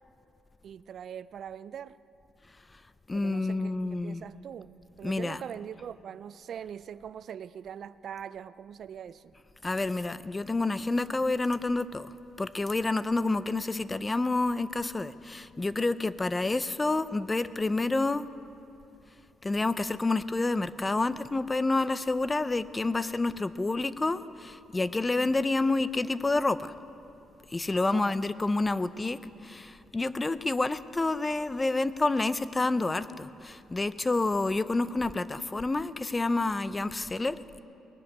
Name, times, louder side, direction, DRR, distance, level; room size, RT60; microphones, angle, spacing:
voice 1, 0.6-2.0 3.1-9.3 27.8-28.1, right 8 dB, 60° right, 0.3 m, -42 dB
voice 2, 3.1-4.2 5.0-5.4 9.6-12.1 12.4-18.2 19.4-26.7 27.5-37.6, left 2 dB, 20° left, 0.5 m, -29 dB
20.0 x 7.2 x 9.7 m
cardioid pair, 90°, 0 cm